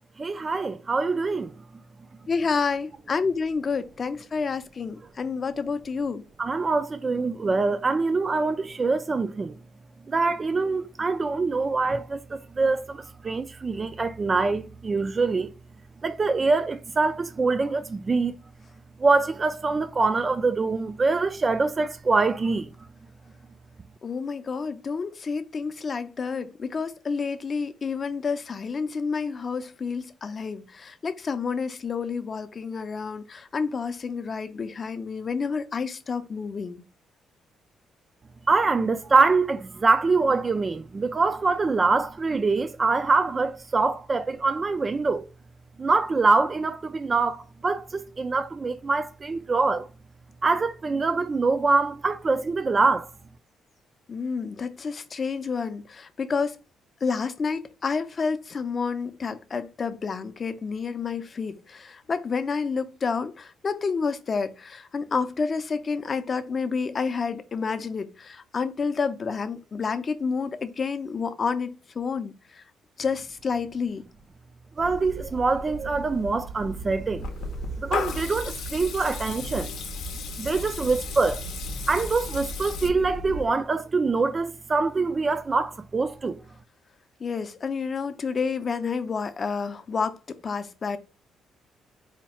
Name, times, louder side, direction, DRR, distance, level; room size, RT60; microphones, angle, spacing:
voice 1, 0.2-1.5 6.4-9.5 10.1-15.5 16.0-18.3 19.0-22.7 38.5-45.2 45.8-49.9 50.4-53.1 74.8-77.3 77.8-79.7 80.4-81.4 81.9-86.4, right 3 dB, 30° right, 0.3 m, -24 dB
voice 2, 2.3-6.2 24.0-36.8 54.1-56.6 57.0-72.3 73.0-74.0 87.2-91.0, left 5 dB, 40° left, 0.5 m, -29 dB
sound 1, 74.8-83.5, right 3 dB, 55° right, 0.8 m, -37 dB
Water tap faucet / Liquid, 77.2-82.9, left 6 dB, 85° left, 0.6 m, -36 dB
4.2 x 2.3 x 2.9 m
cardioid pair, 90°, 0 cm